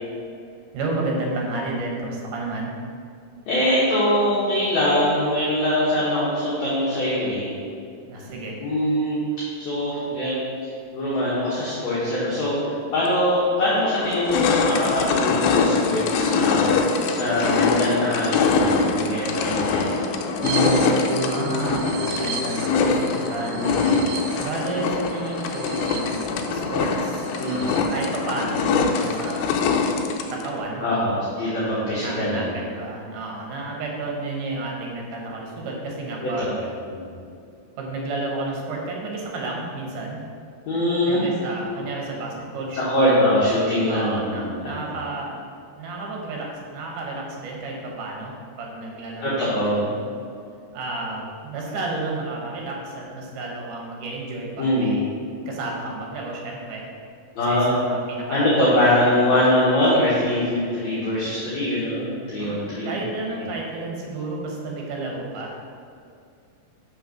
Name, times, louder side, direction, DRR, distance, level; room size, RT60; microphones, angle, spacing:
voice 1, 0.7-2.7 8.1-8.5 21.2-23.6 24.4-29.5 30.3-31.1 32.0-36.7 37.8-40.2 41.1-43.2 43.9-45.4 45.8-50.0 50.7-55.0 55.5-56.9 57.5-59.2 59.6-59.7 62.4-62.6 62.8-65.6, right 2 dB, 70° right, -1 dB, 2.5 m, -31 dB
voice 2, 3.5-7.5 8.6-9.2 9.6-10.4 10.6-16.7 17.1-20.0 20.3-20.7 23.6-24.1 27.4-27.9 30.8-32.5 36.2-36.5 36.9-37.0 40.7-41.3 42.7-44.8 49.2-49.9 54.6-55.0 57.3-57.7 58.3-62.9, left 1 dB, 60° left, -9 dB, 2.1 m, -23 dB
sound 1, 13.1-13.2 13.7-30.5, left 4 dB, 80° left, 2.3 m, -23 dB
sound 2, 20.4-28.1 28.5-28.6 28.9-29.4, right 3 dB, 85° right, 2.4 m, -32 dB
5.6 x 5.5 x 5.8 m, 2.4 s
omnidirectional pair, 4.2 m